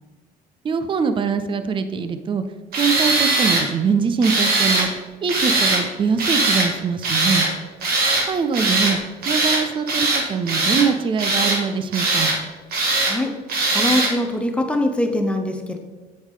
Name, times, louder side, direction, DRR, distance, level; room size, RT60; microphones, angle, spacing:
voice 1, 0.6-2.4 2.8-4.9 5.2-7.5 8.3-9.0 9.3-12.3, right 5 dB, 30° right, 9 dB, 0.5 m, -23 dB
Tools, 2.7-3.6 4.2-4.9 5.3-5.8 6.2-6.7 7.0-7.5 7.8-8.3 8.5-8.9 9.2-9.6 9.9-10.9 11.2-11.6 11.9-12.4 12.7-13.1 13.5-14.1, right 2 dB, 65° right, 1.8 m, -20 dB
voice 2, 13.7-15.8, left 1 dB, 5° left, 4 dB, 0.7 m, -22 dB
8.4 x 4.7 x 3.6 m, 1.3 s
cardioid pair, 110°, 17 cm